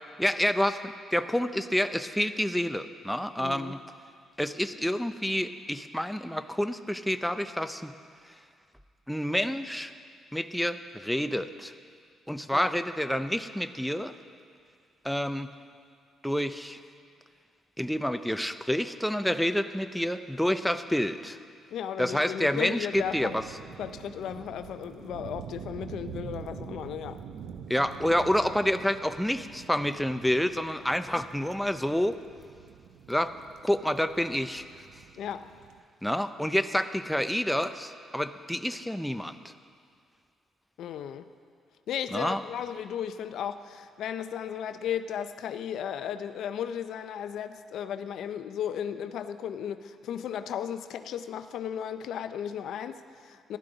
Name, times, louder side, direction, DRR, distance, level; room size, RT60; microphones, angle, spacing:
voice 1, 0.2-3.8 4.4-7.9 9.1-9.9 10.3-11.7 12.3-14.1 15.0-15.5 16.2-16.8 17.8-21.4 22.0-23.4 27.7-32.2 33.1-33.3 33.6-34.6 36.0-39.4 42.1-42.4, equal, 5° left, 9 dB, 0.5 m, -28 dB
voice 2, 3.4-3.8 12.5-12.7 21.7-23.4 23.8-27.2 35.2-35.5 40.8-41.3 41.9-53.6, left 9 dB, 75° left, 10 dB, 0.5 m, -35 dB
sound 1, 22.9-35.8, right 7 dB, 85° right, 0.7 m, -46 dB
15.5 x 11.5 x 3.9 m, 2.2 s
cardioid pair, 90°, 0 cm